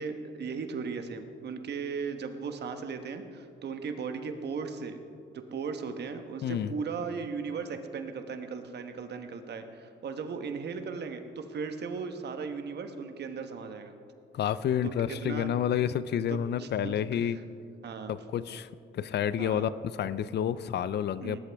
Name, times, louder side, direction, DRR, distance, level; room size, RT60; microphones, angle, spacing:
voice 1, 0.0-5.0 5.3-14.0 14.8-14.9 15.2-15.5 16.3-17.4 17.8-18.1 19.4-19.7 21.2-21.4, right 5 dB, 60° right, 7 dB, 1.2 m, -37 dB
voice 2, 6.4-6.7 14.3-17.4 18.1-19.7 20.0-21.4, left 9 dB, 60° left, 16 dB, 0.5 m, -29 dB
19.5 x 11.5 x 3.5 m, 2.4 s
cardioid pair, 90°, 20 cm